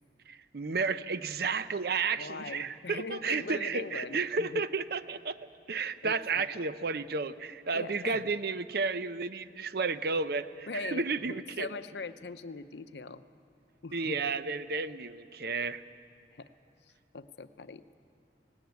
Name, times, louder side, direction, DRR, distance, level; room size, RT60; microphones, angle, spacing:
voice 1, 0.3-5.4 5.7-11.7 13.9-15.8, right 4 dB, 60° right, 13 dB, 0.7 m, -32 dB
voice 2, 2.2-4.6 6.0-6.4 7.7-8.2 10.7-13.2 13.8-14.3 16.4-16.5 17.1-18.0, left 3 dB, 70° left, 12 dB, 0.7 m, -41 dB
17.5 x 17.5 x 9.4 m, 2.5 s
head